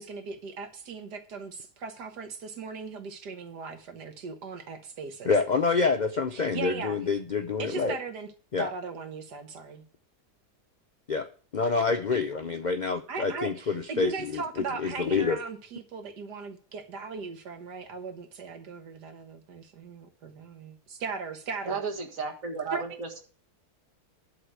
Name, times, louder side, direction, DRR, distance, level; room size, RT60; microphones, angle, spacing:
voice 1, 0.0-5.3 6.3-7.0 7.6-8.3 8.6-9.8 13.1-21.8 22.7-22.8, right 4 dB, 80° right, 1.9 m, -38 dB
voice 2, 5.3-8.0 8.5-8.7 11.1-11.3 11.5-15.4, left 4 dB, 65° left, 0.4 m, -27 dB
voice 3, 21.7-23.1, right 5 dB, 55° right, 2.1 m, -33 dB
11.5 x 4.2 x 8.0 m
omnidirectional pair, 1.7 m